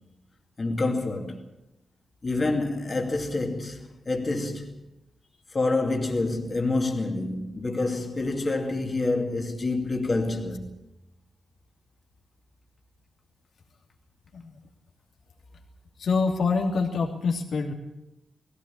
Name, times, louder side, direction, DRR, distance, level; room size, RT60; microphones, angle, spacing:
voice 1, 0.6-1.4 2.2-4.8 5.5-10.7, left 2 dB, 25° left, 2.6 m, -27 dB
voice 2, 16.0-17.7, left 4 dB, 65° left, 2.9 m, -25 dB
20.5 x 17.0 x 8.8 m
wide cardioid pair, 160°, 0 cm